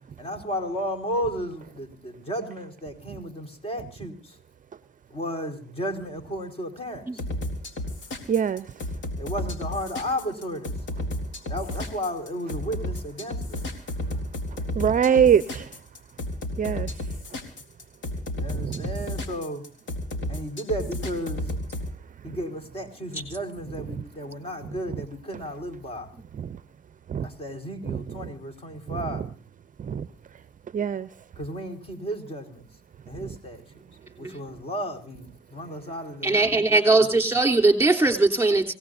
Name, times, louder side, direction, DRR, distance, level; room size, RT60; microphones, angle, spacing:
voice 1, 0.2-4.4 5.1-7.2 9.2-10.7 11.5-13.6 18.4-19.6 20.3-21.5 22.2-26.1 27.2-29.2 31.4-32.6 33.1-33.6 34.2-37.2, equal, 30° left, 4 dB, 4.7 m, -33 dB
sound 1, 7.2-21.9, left 1 dB, 70° left, 3.9 m, -32 dB
voice 2, 8.3-8.7 14.8-15.7 16.6-16.9 18.6-18.8 27.1-27.2 27.9-28.0 29.9-30.1 30.7-31.1, right 8 dB, 40° right, 14 dB, 0.7 m, -22 dB
voice 3, 36.2-38.7, right 3 dB, 10° right, 4 dB, 3.4 m, -20 dB
26.5 x 18.0 x 2.7 m, 0.39 s
cardioid pair, 90°, 20 cm